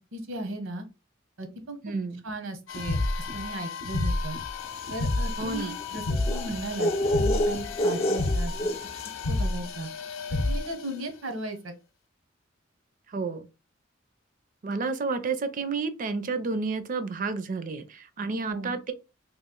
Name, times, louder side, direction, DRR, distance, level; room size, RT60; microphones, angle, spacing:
voice 1, 0.1-0.8 1.4-1.8 2.2-3.0 3.3-4.4 4.9-6.9 7.2-8.7 9.2-9.9 10.5-11.7 18.4-18.7, right 1 dB, 80° right, 0.9 m, -36 dB
voice 2, 1.8-2.2 5.4-5.8 13.1-13.5 14.6-18.9, right 4 dB, 40° right, 0.4 m, -30 dB
sound 1, 2.7-10.9, left 2 dB, 80° left, 0.6 m, -30 dB
sound 2, 4.7-9.3, left 1 dB, 30° left, 0.3 m, -29 dB
3.1 x 2.3 x 3.7 m
head